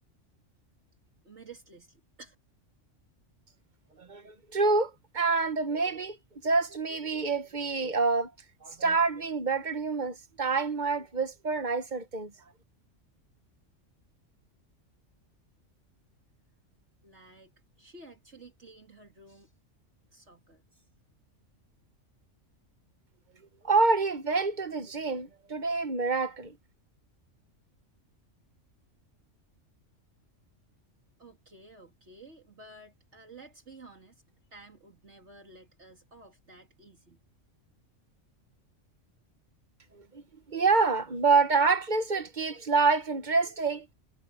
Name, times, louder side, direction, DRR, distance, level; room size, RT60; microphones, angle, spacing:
voice 1, 1.2-2.3 17.0-17.5 17.8-19.5 20.1-20.8 31.2-34.2 34.5-37.2, right 3 dB, 65° right, 3.3 m, -52 dB
voice 2, 4.0-6.2 6.4-8.3 8.6-12.3 23.6-26.6 39.9-43.9, right 4 dB, 40° right, 1.1 m, -27 dB
omnidirectional pair, 1.3 m